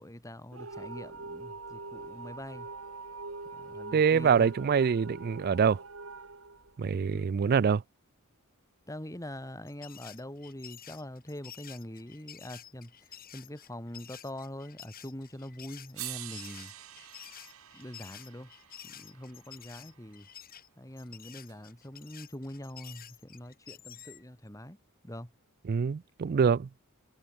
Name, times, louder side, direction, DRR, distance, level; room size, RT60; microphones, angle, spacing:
voice 1, 0.0-2.7 3.5-4.5 7.1-7.3 8.9-12.9 13.3-16.7 17.7-18.5 18.8-20.3 20.8-24.8 25.0-25.3, left 1 dB, 15° left, 4.0 m, -43 dB
sound 1, 0.5-7.4, right 3 dB, 70° right, 2.4 m, -43 dB
voice 2, 3.9-5.8 6.8-7.8 25.7-26.7, right 6 dB, 45° right, 0.4 m, -25 dB
sound 2, 9.7-24.2, left 10 dB, 45° left, 5.3 m, -50 dB
sound 3, 15.3-15.4 15.9-20.1 21.5-21.6, right 15 dB, 90° right, 2.0 m, -46 dB
head